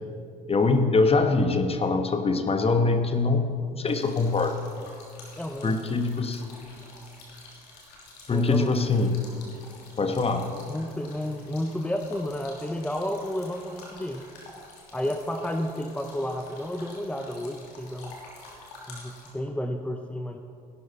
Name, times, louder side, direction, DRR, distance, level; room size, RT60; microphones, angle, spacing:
voice 1, 0.5-4.6 5.6-6.4 8.3-9.2 10.0-10.5, left 3 dB, 30° left, 7 dB, 1.4 m, -23 dB
sound 1, 3.9-19.3, left 2 dB, 80° left, 2.9 m, -49 dB
voice 2, 5.4-5.8 8.3-8.7 10.7-14.3 14.9-18.2 18.9-20.4, left 1 dB, 5° left, 5 dB, 0.8 m, -31 dB
16.5 x 11.5 x 4.2 m, 2.4 s
hypercardioid pair, 60°, 20 cm